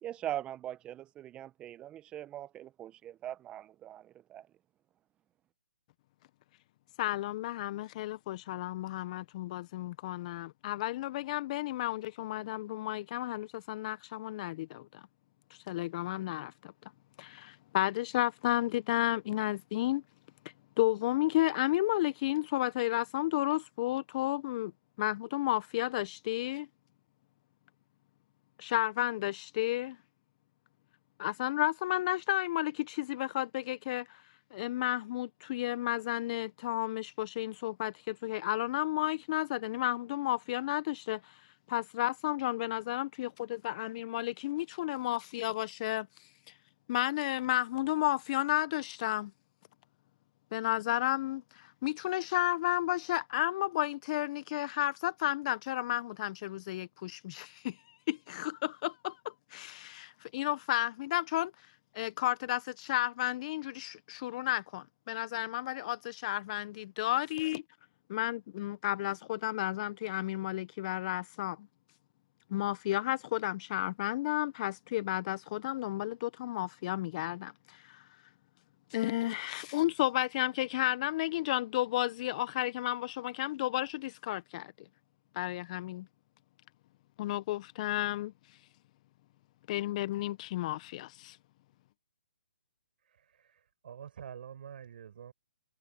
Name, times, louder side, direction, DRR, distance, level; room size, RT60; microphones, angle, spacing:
voice 1, 0.0-4.5, right 12 dB, 15° right, 1.0 m, -41 dB
voice 2, 7.0-14.9 15.7-16.7 17.2-20.0 20.8-24.7 25.0-26.7 28.6-30.0 31.2-34.2 34.5-41.4 41.7-46.1 46.9-49.3 50.5-57.8 58.1-61.5 61.9-67.6 68.1-71.7 72.5-78.0 78.9-84.7 85.3-86.1 87.2-88.3 89.7-91.4, left 16 dB, 40° left, 1.3 m, -32 dB
voice 3, 93.0-95.3, right 8 dB, 55° right, 5.1 m, -48 dB
hypercardioid pair, 140°, 6 cm